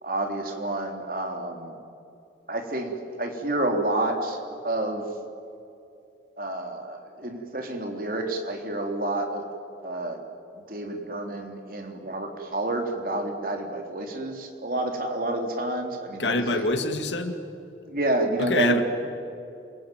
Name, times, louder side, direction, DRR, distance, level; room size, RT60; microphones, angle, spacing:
voice 1, 0.0-1.8 2.5-5.1 6.4-9.4 9.8-10.2 10.7-16.7 17.9-18.8, right 2 dB, 50° right, 3 dB, 3.4 m, -29 dB
voice 2, 16.2-17.3 18.4-18.8, left 2 dB, 80° left, 6 dB, 2.4 m, -25 dB
28.5 x 22.5 x 9.3 m, 2.6 s
head